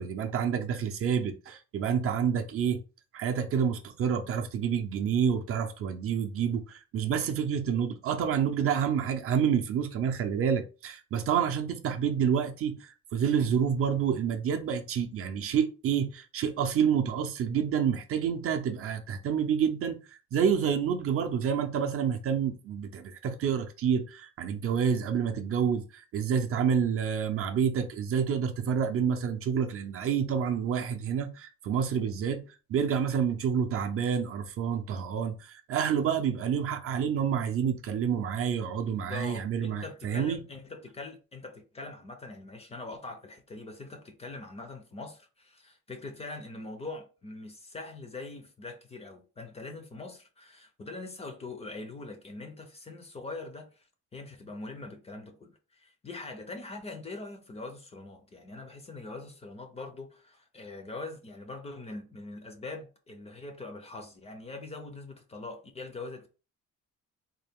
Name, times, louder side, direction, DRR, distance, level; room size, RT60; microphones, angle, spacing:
voice 1, 0.0-2.8 3.1-20.0 20.3-32.4 32.7-40.4, right 7 dB, 50° right, 0.5 m, -28 dB
voice 2, 38.9-53.9 54.1-66.3, left 3 dB, 20° left, 0.4 m, -42 dB
3.9 x 2.4 x 3.4 m
cardioid pair, 170°, 30 cm